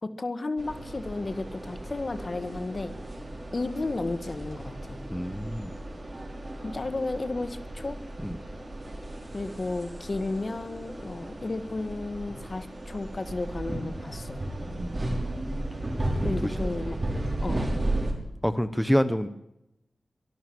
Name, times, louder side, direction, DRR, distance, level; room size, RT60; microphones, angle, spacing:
voice 1, 0.0-2.9 3.5-5.0 6.6-8.0 9.3-14.4 16.2-17.0 17.4-17.7, left 2 dB, 45° left, 11 dB, 1.8 m, -33 dB
sound 1, 0.6-18.1, right 1 dB, 35° right, 6.0 m, -34 dB
voice 2, 5.1-5.7 8.2-8.4 14.8-15.2 16.2-16.7 18.4-19.3, equal, 5° left, 12 dB, 1.1 m, -28 dB
24.0 x 12.5 x 8.8 m, 0.85 s
wide cardioid pair, 85°, 0 cm